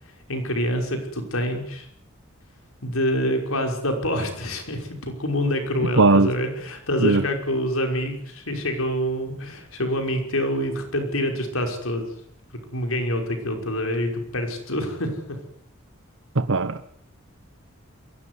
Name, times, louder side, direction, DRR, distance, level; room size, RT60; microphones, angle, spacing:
voice 1, 0.3-1.9 2.8-12.1 12.7-15.4, equal, 75° left, 4 dB, 5.7 m, -26 dB
voice 2, 6.0-6.3 7.0-7.2 16.3-16.9, right 3 dB, 65° right, 10 dB, 0.9 m, -18 dB
22.5 x 17.0 x 9.8 m, 0.69 s
head